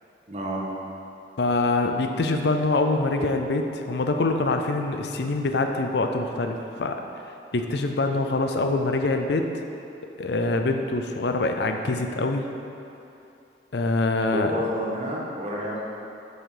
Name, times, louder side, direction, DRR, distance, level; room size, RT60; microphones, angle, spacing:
voice 1, 0.3-0.6 14.3-15.8, equal, 40° right, -5 dB, 1.4 m, -29 dB
voice 2, 1.4-7.0 7.2-9.5 10.2-12.4 13.7-14.6, left 2 dB, 70° left, 5 dB, 0.6 m, -25 dB
7.1 x 6.2 x 5.0 m, 2.7 s
head